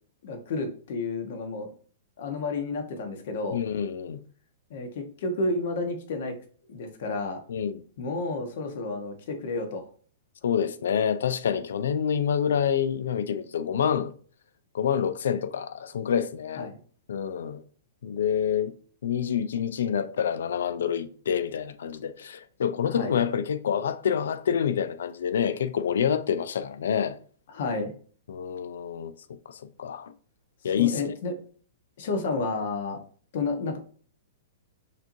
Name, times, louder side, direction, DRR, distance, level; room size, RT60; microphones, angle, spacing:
voice 1, 0.2-1.7 2.2-3.6 4.7-6.4 6.7-7.4 8.0-9.8 16.6-16.8 22.9-23.1 27.5-27.9 30.8-31.3 32.0-33.0 33.3-33.8, left 3 dB, 60° left, 1.1 m, -31 dB
voice 2, 3.5-4.2 7.5-7.8 10.4-14.1 14.7-16.7 17.1-17.6 18.0-18.7 19.0-27.2 28.3-29.1 29.5-30.1 30.6-31.1, left 8 dB, 80° left, 0.4 m, -27 dB
6.6 x 3.0 x 2.7 m
hypercardioid pair, 145°, 0 cm